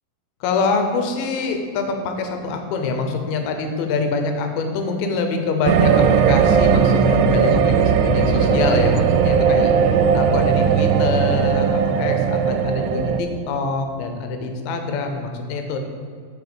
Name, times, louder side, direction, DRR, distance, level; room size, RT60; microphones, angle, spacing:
voice 1, 0.4-15.8, left 4 dB, 75° left, 5 dB, 2.1 m, -25 dB
sound 1, 5.6-13.2, right 6 dB, 85° right, 2.6 m, -17 dB
8.3 x 4.6 x 6.9 m, 2.1 s
omnidirectional pair, 4.8 m